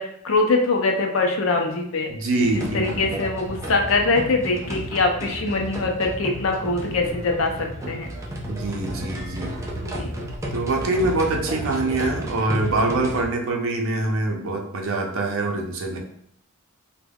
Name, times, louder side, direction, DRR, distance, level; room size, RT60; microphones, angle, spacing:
voice 1, 0.0-2.1 2.5-8.1 9.8-10.1, left 3 dB, 70° left, 3 dB, 0.5 m, -23 dB
voice 2, 2.1-3.2 8.5-9.5 10.5-16.0, right 2 dB, 70° right, 2 dB, 0.5 m, -24 dB
sound 1, 2.4-13.3, equal, 15° right, 0.4 m, -32 dB
2.3 x 2.1 x 3.3 m, 0.71 s
head